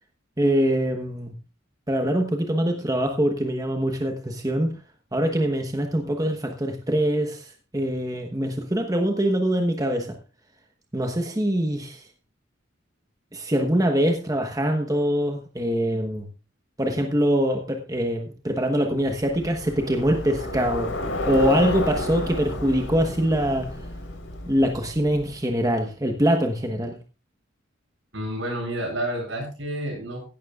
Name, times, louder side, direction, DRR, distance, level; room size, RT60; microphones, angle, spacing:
voice 1, 0.4-1.3 1.9-4.8 5.1-10.2 10.9-12.0 13.3-16.3 16.8-21.0 21.3-23.7 24.5-27.0, equal, 20° right, 3 dB, 1.2 m, -23 dB
Bicycle, 19.0-25.5, left 2 dB, 85° left, 4.1 m, -31 dB
voice 2, 28.1-30.2, right 1 dB, 75° right, 0 dB, 7.9 m, -29 dB
16.0 x 12.0 x 2.4 m, 0.32 s
head